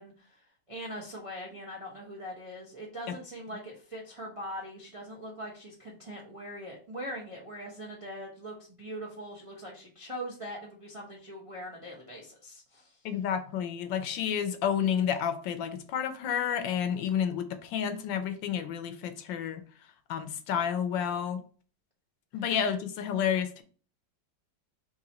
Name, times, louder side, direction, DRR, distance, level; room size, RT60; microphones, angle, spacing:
voice 1, 0.0-13.0 22.3-22.4, equal, 45° right, -3 dB, 0.4 m, -42 dB
voice 2, 13.0-19.6 20.1-21.4 22.3-23.6, left 8 dB, 75° left, 9 dB, 1.2 m, -30 dB
3.7 x 3.1 x 4.1 m, 0.41 s
omnidirectional pair, 2.2 m